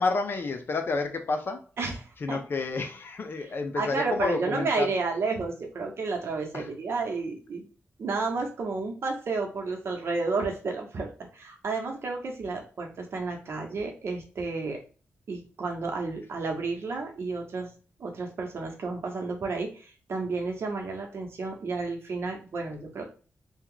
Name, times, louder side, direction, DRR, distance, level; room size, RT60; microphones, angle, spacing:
voice 1, 0.0-1.6 2.2-4.9 6.5-6.7, left 3 dB, 50° left, 0.5 m, -30 dB
voice 2, 1.8-2.4 3.7-7.7 8.0-14.8 15.3-17.7 18.0-23.0, right 3 dB, 60° right, 0.9 m, -31 dB
2.8 x 2.3 x 3.8 m
wide cardioid pair, 105°, 5 cm